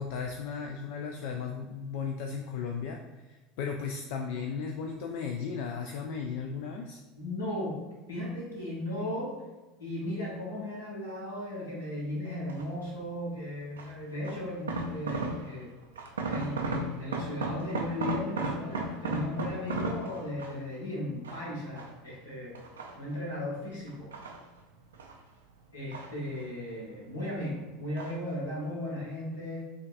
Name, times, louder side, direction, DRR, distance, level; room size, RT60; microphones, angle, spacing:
voice 1, 0.0-7.0, left 6 dB, 60° left, 2 dB, 0.3 m, -36 dB
voice 2, 7.1-7.8 8.1-9.3 9.8-15.7 16.3-22.5 22.9-24.1 25.7-29.6, left 1 dB, 80° left, -5 dB, 1.3 m, -36 dB
sound 1, 12.5-12.9 13.8-15.7 16.0-20.7 21.2-22.1 22.5-23.4 23.9-25.2 25.5-26.7 26.9-27.5 28.0-28.3 28.6-28.7, right 3 dB, 80° right, 0.3 m, -35 dB
5.0 x 2.3 x 2.4 m, 1.2 s
figure-of-eight pair, 75°, 0 cm